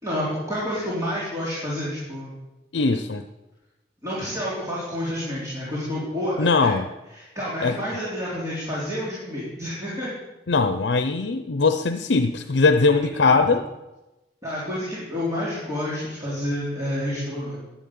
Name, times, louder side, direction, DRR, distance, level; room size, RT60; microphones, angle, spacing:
voice 1, 0.0-2.4 4.0-6.7 7.1-10.1 12.9-13.3 14.4-17.6, equal, 20° right, -8 dB, 4.1 m, -29 dB
voice 2, 2.7-3.2 6.4-6.9 7.6-7.7 10.5-13.7, left 4 dB, 80° left, 8 dB, 0.7 m, -20 dB
11.5 x 10.5 x 8.7 m, 1.0 s
head